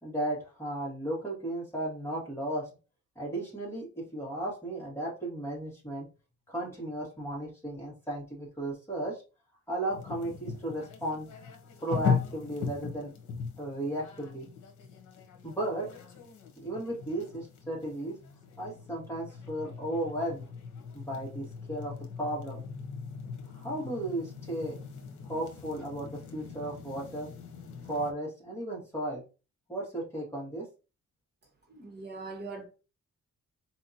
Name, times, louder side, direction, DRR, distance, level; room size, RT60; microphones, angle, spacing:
voice 1, 0.0-2.7 3.2-6.1 6.5-9.2 9.7-11.3 11.8-13.1 13.6-14.5 15.4-15.9 16.6-18.1 18.6-20.4 20.9-22.6 23.5-24.8 25.2-27.3 27.9-29.2 29.7-30.6, right 1 dB, 10° left, 1.9 m, -35 dB
sound 1, 9.9-28.1, left 6 dB, 90° left, 0.9 m, -39 dB
voice 2, 31.7-32.7, right 3 dB, 35° right, 1.4 m, -41 dB
4.3 x 2.9 x 2.8 m
wide cardioid pair, 150°, 30 cm